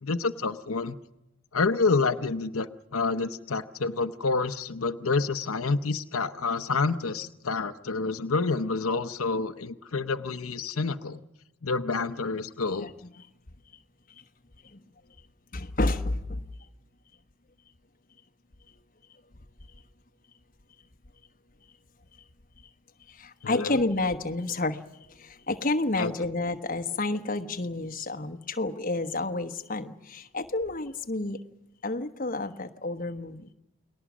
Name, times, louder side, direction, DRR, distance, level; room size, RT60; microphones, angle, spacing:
voice 1, 0.0-1.0 1.5-11.2 11.6-12.9 23.4-23.8 26.0-26.1, left 4 dB, 90° left, 8 dB, 0.8 m, -28 dB
voice 2, 15.5-16.4 23.1-24.8 25.1-31.4 31.8-33.5, left 2 dB, 40° left, 6 dB, 1.1 m, -30 dB
29.5 x 20.0 x 6.2 m, 0.90 s
head